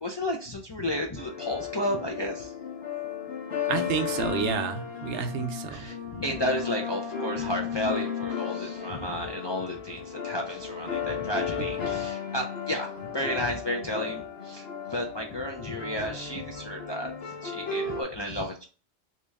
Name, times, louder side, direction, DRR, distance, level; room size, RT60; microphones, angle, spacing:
voice 1, 0.0-2.5 5.7-17.1 17.4-18.6, left 1 dB, 40° left, 0 dB, 0.3 m, -32 dB
sound 1, 1.2-18.0, left 6 dB, 65° left, 1.1 m, -34 dB
voice 2, 3.7-5.9 11.6-11.7, right 6 dB, 85° right, 7 dB, 0.9 m, -30 dB
3.0 x 2.9 x 3.4 m, 0.37 s
omnidirectional pair, 1.2 m